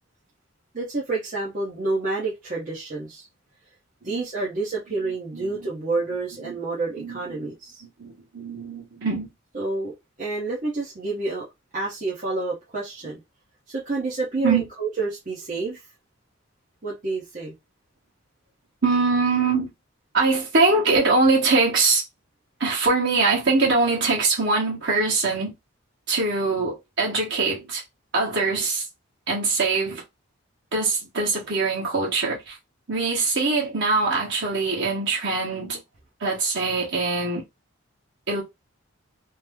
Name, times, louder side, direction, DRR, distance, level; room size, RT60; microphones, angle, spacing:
voice 1, 0.7-3.3 4.0-7.8 9.5-11.5 11.7-13.2 13.7-15.8 16.8-17.5, right 3 dB, 40° right, 0.9 m, -29 dB
voice 2, 5.0-5.7 6.4-6.6 7.0-7.5 7.8-9.3 14.4-14.6 18.8-19.7 20.1-22.0 22.6-25.5 26.1-27.8 28.1-28.8 29.3-30.0 30.7-32.6 32.9-35.8 36.2-37.4 38.3-38.4, right 3 dB, 55° right, 1.4 m, -23 dB
3.1 x 2.0 x 3.4 m
head